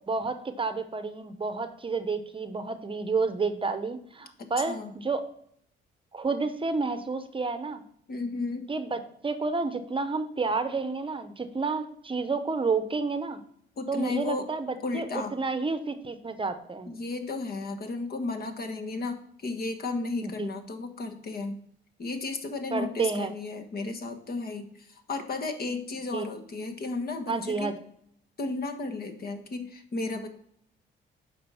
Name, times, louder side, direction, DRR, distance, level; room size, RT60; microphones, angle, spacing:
voice 1, 0.1-5.2 6.1-7.8 8.7-13.4 13.9-15.1 15.3-16.9 20.2-20.5 22.7-23.3 26.1-26.2 27.3-27.7, right 4 dB, 25° right, 10 dB, 0.8 m, -30 dB
voice 2, 4.4-4.9 8.1-8.7 13.8-14.5 14.8-15.3 16.9-21.6 22.0-27.7 28.4-30.3, left 3 dB, 50° left, 7 dB, 1.4 m, -34 dB
8.5 x 5.3 x 5.6 m, 0.68 s
cardioid pair, 90°, 20 cm